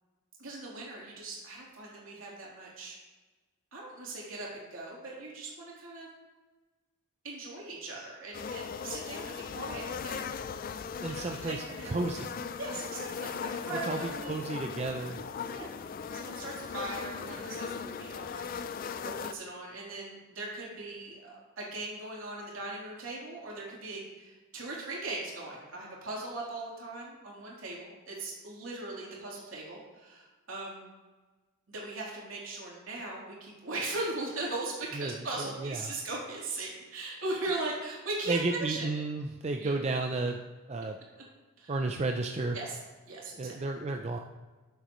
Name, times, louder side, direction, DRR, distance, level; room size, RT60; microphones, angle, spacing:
voice 1, 0.4-3.0 3.7-6.1 7.2-10.7 11.1-11.9 12.6-14.5 15.5-15.7 16.1-30.9 31.7-38.9 39.6-39.8 41.6-41.7 42.5-42.8 43.0-43.5, right 2 dB, 65° right, -4 dB, 3.3 m, -39 dB
sound 1, 8.3-19.3, left 6 dB, 40° left, 0.3 m, -38 dB
voice 2, 11.0-12.3 13.8-15.2 35.0-35.1 35.4-35.9 38.3-40.4 40.7-41.0 41.7-42.6 43.4-44.2, right 3 dB, 30° right, 4 dB, 0.4 m, -32 dB
13.0 x 7.9 x 3.1 m, 1.3 s
head